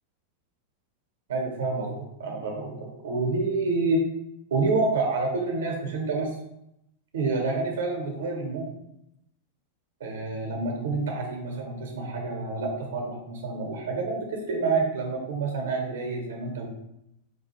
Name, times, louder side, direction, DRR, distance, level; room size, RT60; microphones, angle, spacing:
voice 1, 1.3-4.0 4.5-6.4 7.1-8.7 10.0-16.7, right 3 dB, 60° right, 2 dB, 0.8 m, -28 dB
4.6 x 2.4 x 2.9 m, 0.81 s
figure-of-eight pair, 90°, 0 cm